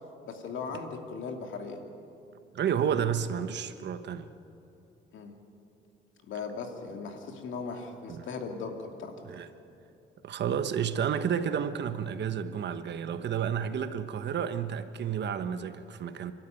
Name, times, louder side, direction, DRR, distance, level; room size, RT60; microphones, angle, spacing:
voice 1, 0.2-1.8 5.1-5.3 6.3-9.5, left 4 dB, 75° left, 4 dB, 2.8 m, -38 dB
voice 2, 2.5-4.3 8.1-8.3 9.2-9.5 10.2-16.3, right 8 dB, 60° right, 10 dB, 1.2 m, -31 dB
29.5 x 12.5 x 9.3 m, 2.9 s
cardioid pair, 90°, 20 cm